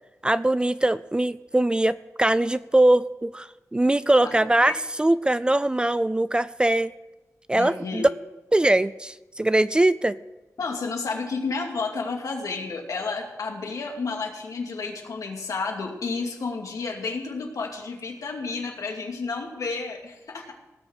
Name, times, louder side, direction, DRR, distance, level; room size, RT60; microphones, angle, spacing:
voice 1, 0.2-3.5 3.7-6.9 7.5-8.1 8.5-10.2, right 1 dB, 15° right, 16 dB, 0.4 m, -21 dB
voice 2, 7.5-8.1 10.6-20.5, left 4 dB, 75° left, 2 dB, 2.4 m, -31 dB
17.5 x 6.8 x 7.8 m, 1.1 s
wide cardioid pair, 105°, 6 cm